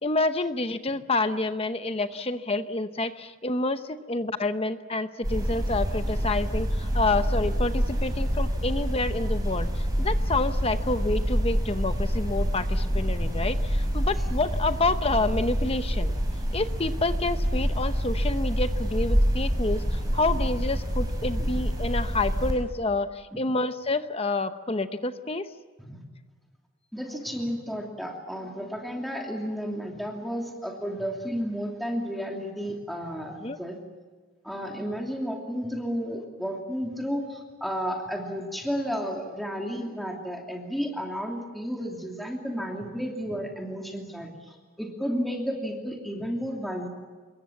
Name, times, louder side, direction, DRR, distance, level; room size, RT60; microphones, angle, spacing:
voice 1, 0.0-16.1 16.5-25.5 33.4-33.6, left 2 dB, 25° left, 10 dB, 0.8 m, -28 dB
sound 1, 5.2-22.5, equal, 15° right, 6.3 m, -27 dB
voice 2, 26.9-33.8 34.4-46.9, equal, ahead, 0 dB, 2.7 m, -32 dB
26.5 x 22.0 x 7.2 m, 1.4 s
head